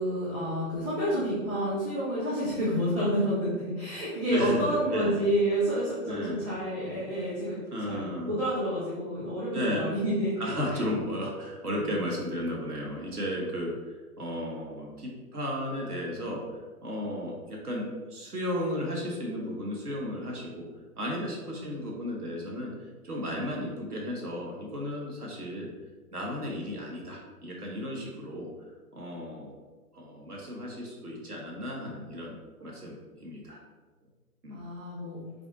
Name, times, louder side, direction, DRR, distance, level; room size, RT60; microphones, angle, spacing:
voice 1, 0.0-10.9 21.5-21.8 34.5-35.2, equal, 15° right, -10 dB, 0.7 m, -29 dB
voice 2, 4.3-5.2 6.0-6.5 7.7-8.4 9.5-9.8 10.4-16.4 16.8-20.7 21.0-22.7 23.0-25.7 26.1-28.5 28.9-29.5 29.9-33.6 34.4-34.6, equal, 80° right, -1 dB, 1.2 m, -34 dB
5.1 x 2.5 x 3.7 m, 1.3 s
figure-of-eight pair, 125°, 45 cm